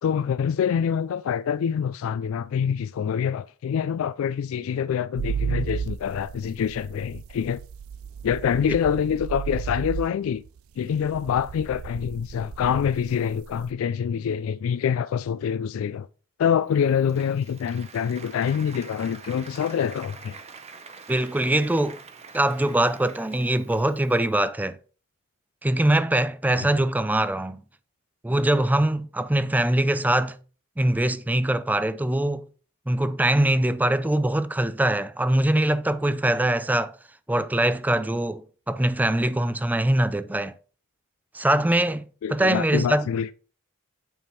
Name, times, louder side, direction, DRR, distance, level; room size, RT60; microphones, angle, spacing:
voice 1, 0.0-7.6 8.2-10.4 10.8-16.1 16.4-20.4 26.6-26.7 42.2-43.3, left 7 dB, 70° left, 0.3 m, -26 dB
sound 1, 5.2-13.7, right 7 dB, 75° right, 0.4 m, -34 dB
Applause, 16.7-24.3, right 5 dB, 30° right, 0.7 m, -46 dB
voice 2, 21.1-22.0 22.3-24.8 25.6-27.6 28.2-30.4 30.8-32.5 32.9-36.9 37.3-40.5 41.3-42.0 42.3-43.1, right 1 dB, 10° right, 0.4 m, -23 dB
8.9 x 3.6 x 4.5 m
head